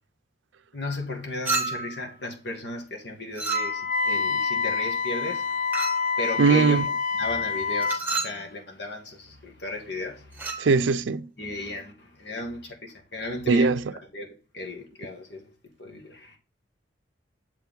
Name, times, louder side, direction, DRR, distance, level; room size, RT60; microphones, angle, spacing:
voice 1, 0.7-5.9 6.2-6.8 7.2-10.7 11.4-13.8 14.1-15.5 15.8-16.4, left 2 dB, 65° left, 2.0 m, -35 dB
Chink clink, 1.5-2.0 3.4-4.0 5.7-6.1 7.8-8.4 10.3-10.7, right 3 dB, 10° right, 1.2 m, -30 dB
Wind instrument woodwind instrument, 3.5-8.1, left 5 dB, 40° left, 0.4 m, -27 dB
voice 2, 6.4-6.8 10.6-11.3 13.5-13.8, right 4 dB, 85° right, 0.5 m, -20 dB
7.2 x 4.7 x 3.8 m
head